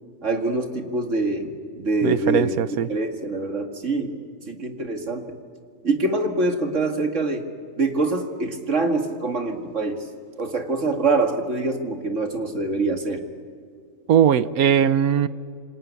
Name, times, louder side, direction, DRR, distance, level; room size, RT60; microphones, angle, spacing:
voice 1, 0.2-1.5 1.8-2.5 2.9-4.2 4.5-5.4 5.8-7.5 7.8-10.0 10.4-13.2, right 2 dB, 55° right, 5 dB, 2.4 m, -24 dB
voice 2, 2.0-2.9 14.1-15.3, right 9 dB, 75° right, 15 dB, 1.3 m, -19 dB
28.0 x 26.0 x 8.3 m, 2.2 s
omnidirectional pair, 1.6 m